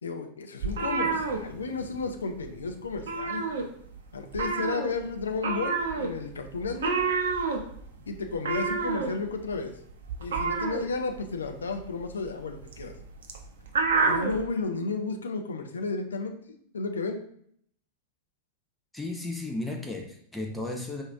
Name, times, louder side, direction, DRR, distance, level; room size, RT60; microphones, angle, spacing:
voice 1, 0.0-3.5 4.1-7.0 8.1-9.7 10.2-13.0 13.9-16.4 16.7-17.2, left 4 dB, 70° left, 6 dB, 0.4 m, -33 dB
sound 1, 0.6-2.1 2.4-2.6 2.9-4.0 4.3-14.4, right 4 dB, 65° right, 0.7 m, -29 dB
voice 2, 18.9-21.0, left 2 dB, 5° left, 0 dB, 0.7 m, -34 dB
4.9 x 2.6 x 3.5 m, 0.65 s
figure-of-eight pair, 90°, 0 cm